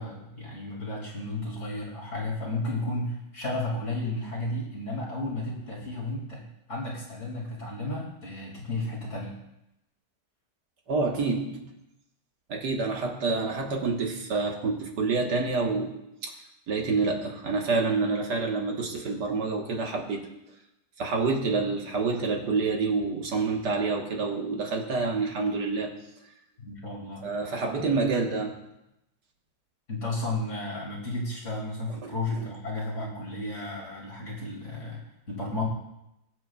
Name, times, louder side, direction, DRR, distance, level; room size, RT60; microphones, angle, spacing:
voice 1, 0.0-9.3 26.6-27.2 27.8-27.9 29.9-35.7, left 2 dB, 45° left, -3 dB, 2.7 m, -33 dB
voice 2, 10.9-11.6 12.5-16.3 16.7-20.3 21.0-25.9 27.2-28.6 32.0-32.1, right 4 dB, 70° right, 1 dB, 1.9 m, -27 dB
22.0 x 7.7 x 2.3 m, 0.89 s
omnidirectional pair, 1.9 m